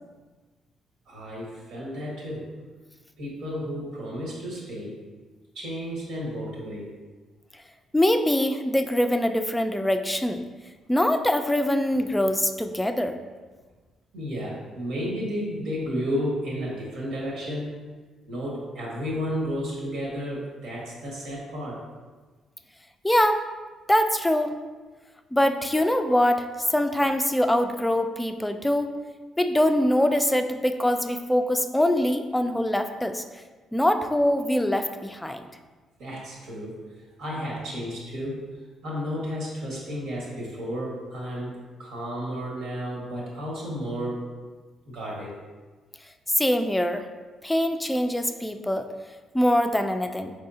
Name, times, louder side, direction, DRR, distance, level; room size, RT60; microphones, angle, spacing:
voice 1, 1.1-2.5 3.2-5.0 5.5-6.9 14.1-17.7 18.3-21.8 36.0-36.8 37.2-38.5 38.8-44.2 44.9-45.3, equal, 85° right, -4 dB, 1.4 m, -32 dB
voice 2, 7.9-10.4 10.9-13.2 23.0-23.5 23.9-24.6 25.3-28.9 29.4-33.2 33.7-35.4 46.3-47.1 47.4-48.9 49.3-50.3, left 1 dB, 5° left, 7 dB, 0.3 m, -23 dB
4.6 x 3.5 x 2.7 m, 1.3 s
cardioid pair, 90°, 0 cm